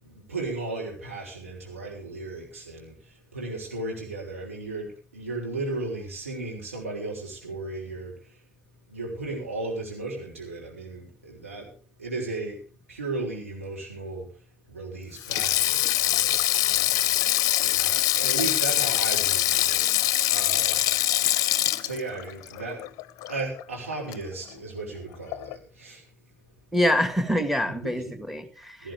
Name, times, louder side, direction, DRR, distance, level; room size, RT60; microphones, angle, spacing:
voice 1, 0.0-8.4 8.9-11.7 12.0-12.6 12.9-14.3 14.7-17.2 17.6-20.9 21.8-22.9 23.3-26.0 27.8-28.0 28.8-28.9, right 3 dB, 85° right, -2 dB, 3.5 m, -35 dB
Sink (filling or washing), 15.2-23.6 23.9-24.1 25.3-25.6, left 15 dB, 60° left, 0.5 m, -24 dB
voice 2, 26.7-28.9, equal, ahead, 8 dB, 2.0 m, -25 dB
17.0 x 13.5 x 3.5 m, 0.39 s
figure-of-eight pair, 45°, 7 cm